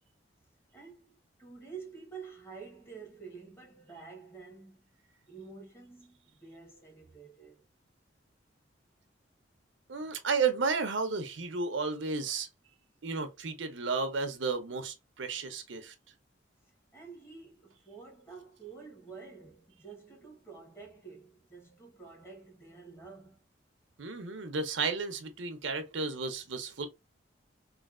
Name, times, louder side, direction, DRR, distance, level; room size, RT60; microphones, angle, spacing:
voice 1, 0.7-4.9 5.3-7.6 16.9-23.4, right 5 dB, 15° left, 1.2 m, -49 dB
voice 2, 9.9-12.5 13.0-15.9 24.0-26.9, right 4 dB, 85° right, 0.7 m, -33 dB
3.2 x 2.7 x 2.5 m
head